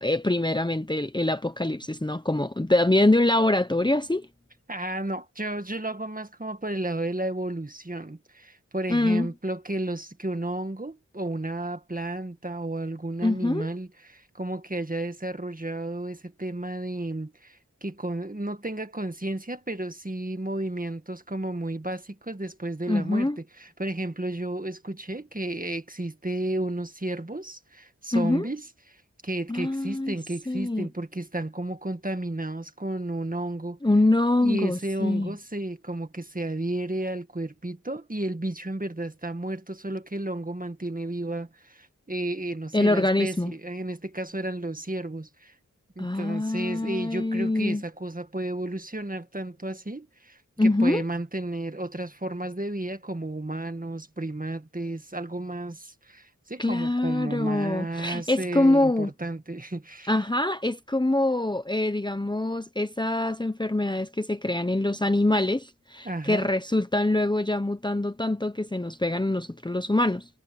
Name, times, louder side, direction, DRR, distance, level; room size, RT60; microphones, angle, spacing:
voice 1, 0.0-4.3 8.9-9.3 13.2-13.7 22.9-23.4 28.1-28.5 29.5-30.1 30.5-30.9 33.8-35.3 42.7-43.5 46.0-47.8 50.6-51.0 56.6-59.1 60.1-70.3, left 2 dB, 15° left, 0.9 m, -24 dB
voice 2, 4.7-33.8 34.4-45.6 46.0-60.1 66.0-66.5, right 1 dB, 25° right, 1.8 m, -33 dB
wide cardioid pair, 50°, 32 cm